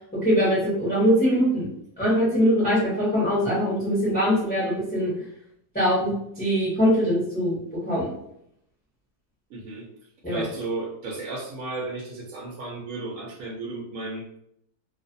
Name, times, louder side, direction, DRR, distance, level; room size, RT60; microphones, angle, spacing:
voice 1, 0.2-1.7 2.0-5.1 5.7-7.6 7.8-8.1 10.2-10.4, equal, 10° left, -8 dB, 0.5 m, -22 dB
voice 2, 9.5-9.8 10.3-14.4, right 3 dB, 70° right, -2 dB, 0.8 m, -34 dB
2.4 x 2.4 x 2.5 m, 0.74 s
omnidirectional pair, 1.8 m